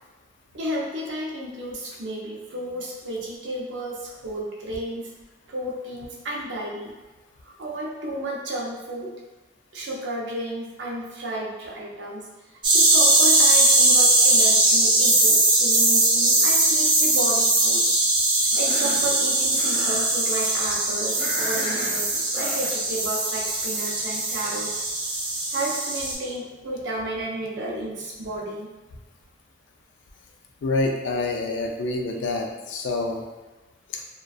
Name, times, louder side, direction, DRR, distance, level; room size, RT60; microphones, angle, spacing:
voice 1, 0.5-5.1 5.5-6.9 7.4-9.1 9.7-12.2 12.7-17.9 18.6-24.9 25.5-28.7, right 1 dB, 75° right, -3 dB, 0.5 m, -32 dB
sound 1, 12.6-26.1, right 2 dB, 25° right, 0.3 m, -20 dB
Cough, 18.5-19.1 19.5-20.1 21.2-22.8, equal, 30° left, 0.8 m, -34 dB
voice 2, 30.6-33.2 33.9-34.0, left 2 dB, 80° left, 2 dB, 0.3 m, -27 dB
2.5 x 2.2 x 2.3 m, 1.2 s
head